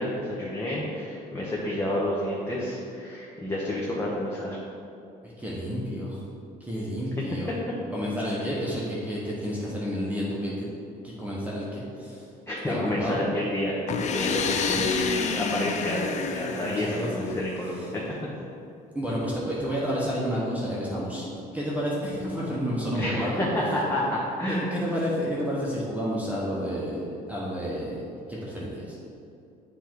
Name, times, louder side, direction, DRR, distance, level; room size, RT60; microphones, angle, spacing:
voice 1, 0.0-4.6 12.5-18.0 23.0-24.7, left 1 dB, 15° left, -6 dB, 1.0 m, -29 dB
voice 2, 5.2-6.2 6.6-7.5 7.9-10.7 11.0-12.2 12.7-13.2 14.7-14.8 16.6-17.1 18.9-21.3 21.5-23.5 24.5-28.0 28.3-29.0, equal, 10° right, -7 dB, 1.1 m, -30 dB
sound 1, 13.9-17.6, left 6 dB, 45° left, 0.4 m, -30 dB
7.1 x 3.5 x 4.6 m, 2.6 s
cardioid pair, 110°, 17 cm